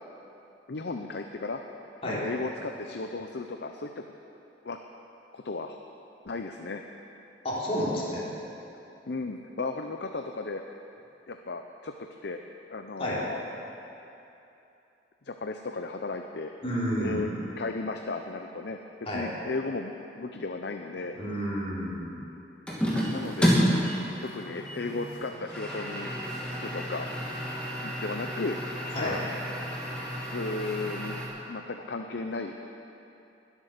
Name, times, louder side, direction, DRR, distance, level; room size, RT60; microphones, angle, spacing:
voice 1, 0.7-1.6 2.0-4.0 4.6-4.8 5.3-5.8 6.2-6.8 9.1-10.6 11.3-11.9 12.2-12.4 12.7-13.4 15.2-16.5 17.0-17.3 17.6-18.8 19.1-21.2 23.1-23.5 24.2-26.1 26.6-27.1 27.8-28.6 29.0-29.2 30.3-31.1 31.5-32.6, left 3 dB, 65° left, 5 dB, 0.7 m, -35 dB
voice 2, 7.4-8.3 13.0-13.2 16.6-17.3 19.0-19.3 21.1-22.1 28.9-29.2, equal, 35° left, -7 dB, 3.6 m, -30 dB
sound 1, 22.7-31.3, equal, 5° left, 2.5 m, -30 dB
20.5 x 8.3 x 6.7 m, 2.9 s
head